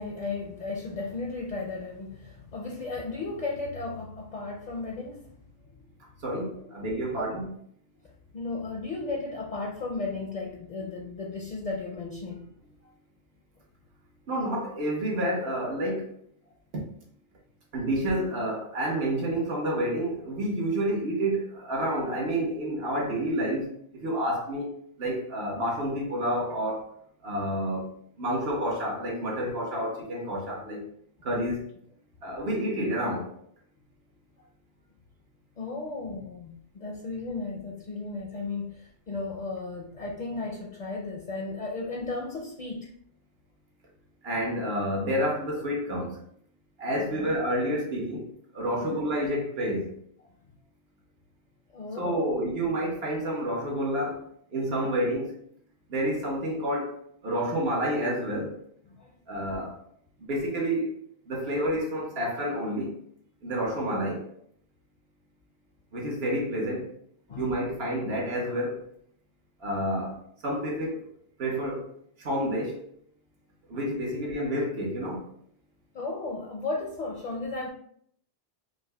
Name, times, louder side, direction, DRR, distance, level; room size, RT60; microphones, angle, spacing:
voice 1, 0.0-5.4 5.7-5.8 6.6-6.7 7.2-7.3 8.3-12.6 34.4-34.5 35.6-42.9 47.0-47.4 48.8-49.0 51.7-52.5 58.9-59.1 67.3-67.5 75.9-77.7, left 3 dB, 55° left, -1 dB, 0.5 m, -35 dB
voice 2, 6.2-7.5 14.3-16.1 17.7-24.7 25.0-26.8 27.2-30.9 31.2-31.7 32.2-33.3 44.2-46.2 46.8-49.9 52.0-55.3 55.9-58.6 59.3-59.7 60.2-60.9 61.3-63.0 63.4-64.3 65.9-66.9 67.4-68.9 69.6-70.2 70.4-71.0 71.4-71.9 72.2-72.8 73.7-75.2, equal, 75° right, -2 dB, 1.2 m, -29 dB
5.0 x 2.1 x 2.2 m, 0.65 s
omnidirectional pair, 1.0 m